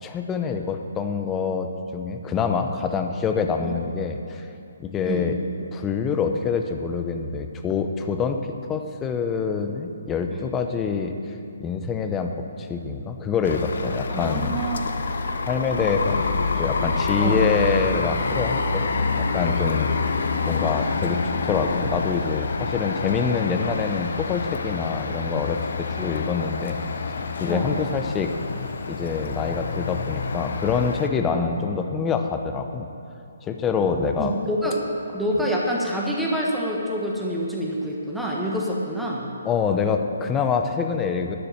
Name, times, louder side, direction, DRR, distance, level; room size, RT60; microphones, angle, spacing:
voice 1, 0.0-4.4 4.8-5.4 5.7-8.4 8.7-11.1 11.6-14.6 15.4-16.3 16.6-18.9 19.2-20.1 20.5-26.8 27.1-28.3 28.9-32.9 33.4-34.3 39.4-41.4, left 5 dB, 15° left, 5 dB, 0.8 m, -26 dB
Bus turns, 13.4-31.1, left 4 dB, 60° left, 0.9 m, -27 dB
voice 2, 14.1-14.9 16.3-16.5 17.2-17.4 20.3-20.5 25.1-25.2 25.9-26.1 27.5-27.7 31.3-31.5 33.7-34.8 35.1-39.3, equal, ahead, -4 dB, 1.4 m, -27 dB
12.0 x 6.8 x 8.8 m, 2.6 s
figure-of-eight pair, 135°, 0 cm